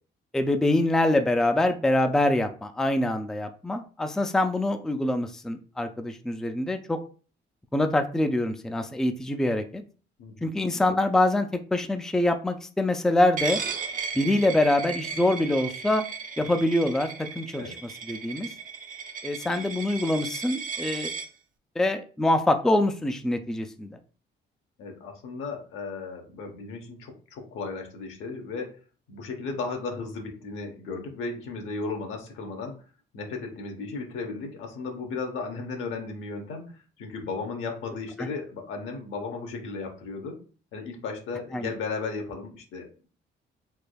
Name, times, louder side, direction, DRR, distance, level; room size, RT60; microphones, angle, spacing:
voice 1, 0.3-7.0 7.7-9.8 10.4-13.6 14.2-16.0 16.4-18.5 19.2-21.1 21.8-24.0 38.2-38.3 41.5-41.7, left 1 dB, ahead, 7 dB, 0.3 m, -25 dB
voice 2, 10.2-10.5 17.5-17.8 24.8-28.7 29.1-32.8 33.1-40.4 40.7-43.1, left 4 dB, 90° left, 2 dB, 0.9 m, -35 dB
Coin (dropping), 13.4-21.3, right 6 dB, 40° right, 0.6 m, -35 dB
3.4 x 3.2 x 2.2 m, 0.38 s
cardioid pair, 90°, 20 cm